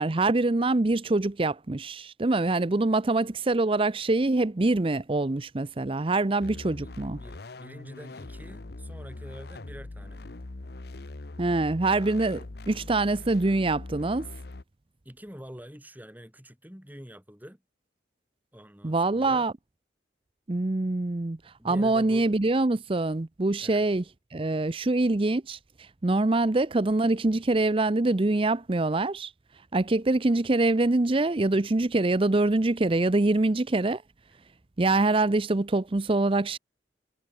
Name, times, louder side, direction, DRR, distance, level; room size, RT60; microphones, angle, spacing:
voice 1, 0.0-7.2 11.4-14.3 18.8-19.5 20.5-21.4 21.6-24.0 24.3-25.6 26.0-29.3 29.7-34.0 34.8-36.6, right 2 dB, 30° right, 0.6 m, -24 dB
sound 1, 6.4-14.6, left 2 dB, 60° left, 0.9 m, -41 dB
voice 2, 6.8-10.2 15.0-17.6 18.5-19.5 21.6-22.3 23.6-23.9, equal, 10° right, 4.3 m, -46 dB
head